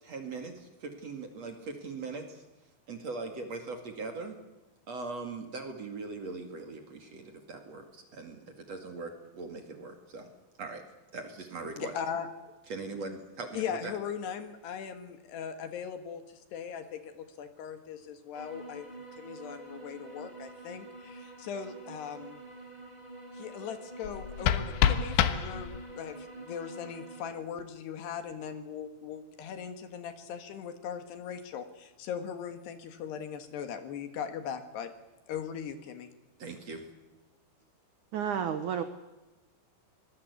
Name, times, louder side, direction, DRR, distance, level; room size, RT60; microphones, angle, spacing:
voice 1, 0.0-2.4 2.9-4.4 4.9-10.3 10.6-10.8 11.1-11.9 12.7-13.9 36.4-36.9, right 3 dB, 45° right, 5 dB, 2.7 m, -40 dB
voice 2, 11.8-12.3 13.5-22.4 23.3-34.9 35.3-36.1, left 7 dB, 70° left, 8 dB, 3.6 m, -39 dB
sound 1, 18.3-27.2, right 2 dB, 10° right, 3.0 m, -47 dB
sound 2, 24.0-26.0, left 10 dB, 85° left, 3.6 m, -28 dB
voice 3, 38.1-38.8, right 8 dB, 75° right, 9 dB, 1.8 m, -31 dB
24.0 x 20.5 x 8.3 m, 1.1 s
omnidirectional pair, 5.3 m